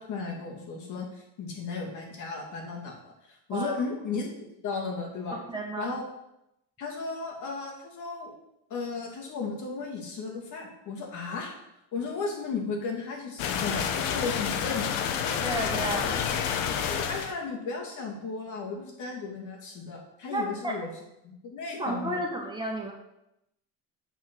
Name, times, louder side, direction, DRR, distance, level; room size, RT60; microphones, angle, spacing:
voice 1, 0.0-5.4 5.8-6.0 6.8-8.3 8.7-11.5 11.9-15.3 15.9-16.1 16.9-20.9 21.2-22.2, left 4 dB, 60° left, -1 dB, 2.5 m, -35 dB
voice 2, 5.5-6.0 15.4-16.1 20.3-20.8 21.8-22.9, right 1 dB, 15° right, 0 dB, 1.6 m, -32 dB
sound 1, 13.4-17.3, left 8 dB, 80° left, 0.9 m, -29 dB
8.2 x 4.4 x 6.2 m, 0.84 s
supercardioid pair, 100°, 34 cm